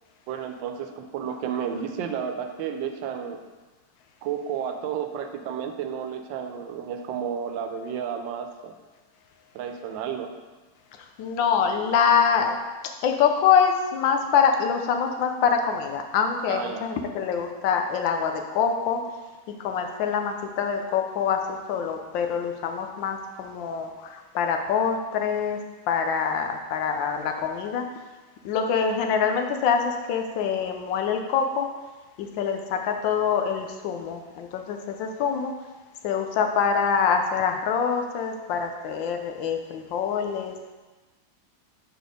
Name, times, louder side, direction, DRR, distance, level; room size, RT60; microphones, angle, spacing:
voice 1, 0.3-3.4 4.2-8.7 9.5-10.3 16.5-16.9, right 8 dB, 85° right, 6 dB, 1.3 m, -32 dB
voice 2, 11.2-12.5 13.0-19.0 19.5-25.6 25.9-27.9 28.4-31.7 32.2-35.5 36.0-40.7, left 7 dB, 85° left, 5 dB, 1.4 m, -25 dB
4.7 x 4.1 x 5.1 m, 1.2 s
omnidirectional pair, 2.0 m